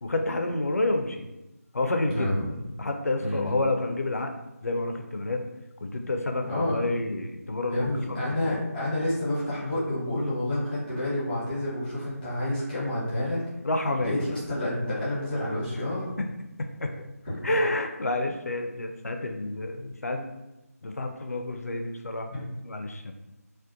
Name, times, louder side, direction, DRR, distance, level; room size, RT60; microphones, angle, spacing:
voice 1, 0.0-1.3 1.7-2.3 2.8-4.3 4.6-5.4 5.8-8.2 8.5-8.6 13.6-14.1 16.2-16.3 16.6-16.9 17.4-20.3 20.8-22.3 22.6-23.1, left 2 dB, 65° left, 4 dB, 0.3 m, -29 dB
voice 2, 2.1-2.5 3.2-3.6 6.4-6.8 7.7-13.4 14.0-16.1 22.3-22.4, left 1 dB, 5° left, -10 dB, 0.8 m, -29 dB
2.4 x 2.1 x 2.6 m, 0.96 s
figure-of-eight pair, 160°, 9 cm